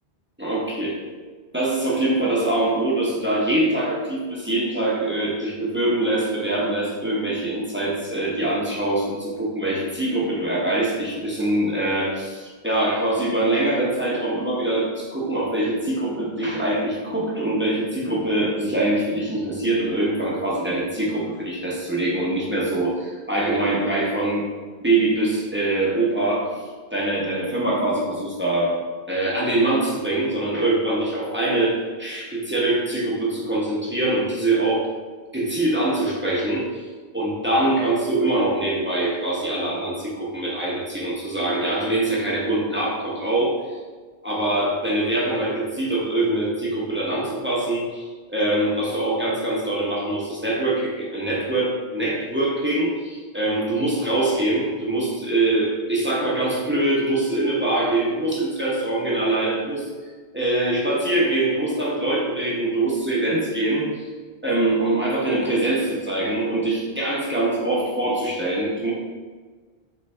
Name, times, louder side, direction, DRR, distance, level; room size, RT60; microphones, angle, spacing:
voice 1, 0.4-1.0 1.5-24.4 24.8-28.8 29.1-34.9 35.3-36.6 37.1-43.6 44.2-59.8 60.3-64.1 64.4-68.9, right 2 dB, 15° right, -5 dB, 0.7 m, -23 dB
4.0 x 3.2 x 3.2 m, 1.4 s
omnidirectional pair, 1.0 m